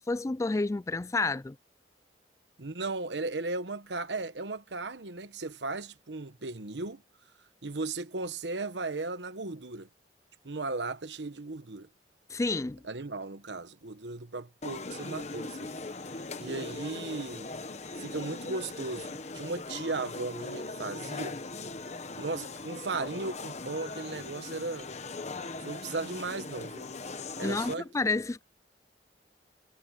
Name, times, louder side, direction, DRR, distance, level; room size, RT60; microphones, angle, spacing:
voice 1, 0.0-1.6 12.3-12.8 27.4-28.4, left 3 dB, 15° left, 0.3 m, -30 dB
voice 2, 2.6-7.0 7.6-9.9 10.4-11.9 12.8-15.7 16.4-17.5 18.0-21.4 22.1-24.9 25.6-26.9 27.4-28.1, right 3 dB, 85° right, 1.2 m, -36 dB
sound 1, 14.6-27.7, left 3 dB, 40° left, 1.2 m, -40 dB
head